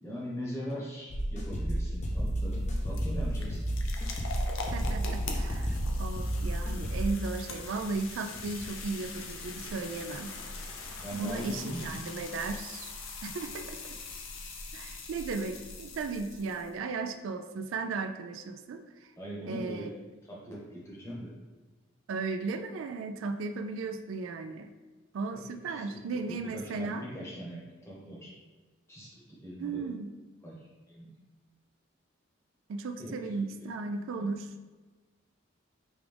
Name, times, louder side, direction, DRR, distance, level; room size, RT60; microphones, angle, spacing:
voice 1, 0.0-3.7 11.0-12.2 19.2-21.3 25.7-25.8 26.1-28.3 28.9-29.9 30.4-31.2 33.0-33.5 34.2-34.3, equal, 15° left, -5 dB, 0.9 m, -41 dB
sound 1, 1.1-7.1, equal, 35° left, 0.5 m, -31 dB
sound 2, 1.9-16.7, left 3 dB, 85° left, 0.6 m, -42 dB
voice 2, 4.7-10.3 11.2-12.9 13.2-13.8 14.7-18.8 19.4-19.9 22.1-24.7 25.1-27.0 29.6-30.1 32.7-34.5, right 4 dB, 85° right, 8 dB, 0.3 m, -36 dB
5.1 x 2.4 x 3.3 m, 1.3 s
head